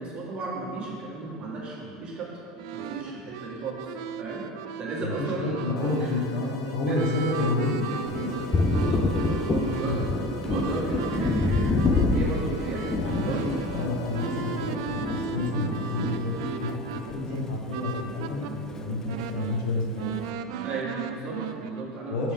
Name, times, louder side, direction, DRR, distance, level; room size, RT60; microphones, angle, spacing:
voice 1, 0.0-2.3 2.7-4.4 4.8-5.6 6.0-6.1 6.8-7.1 8.1-10.1 10.4-13.4 20.6-22.3, right 3 dB, 35° right, -4 dB, 1.5 m, -34 dB
sound 1, 2.6-18.5 18.9-21.8, right 8 dB, 85° right, 0.4 m, -37 dB
voice 2, 5.6-8.3 9.6-10.0 12.9-13.3 13.7-20.1 22.1-22.3, left 2 dB, 70° left, -2 dB, 1.4 m, -30 dB
sound 2, 5.8-14.8, right 1 dB, 90° left, 0.7 m, -43 dB
Thunder, 8.1-17.8 18.1-19.3, left 3 dB, 20° left, 0.4 m, -28 dB
7.1 x 6.1 x 3.5 m, 2.6 s
supercardioid pair, 140°, 3 cm